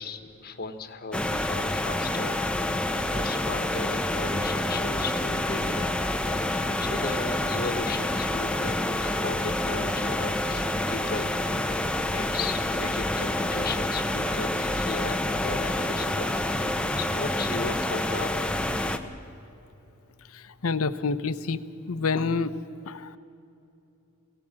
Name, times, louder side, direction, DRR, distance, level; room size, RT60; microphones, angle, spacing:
voice 1, 0.0-2.4 3.1-6.0 6.5-8.7 9.0-11.3 12.1-16.7 17.0-18.5, left 4 dB, 45° left, 9 dB, 1.3 m, -36 dB
sound 1, 1.1-19.0, left 1 dB, 5° left, 0.8 m, -28 dB
voice 2, 20.6-21.6 21.9-22.5 22.9-23.1, left 4 dB, 90° left, 14 dB, 0.8 m, -27 dB
22.0 x 17.0 x 7.5 m, 2.8 s
head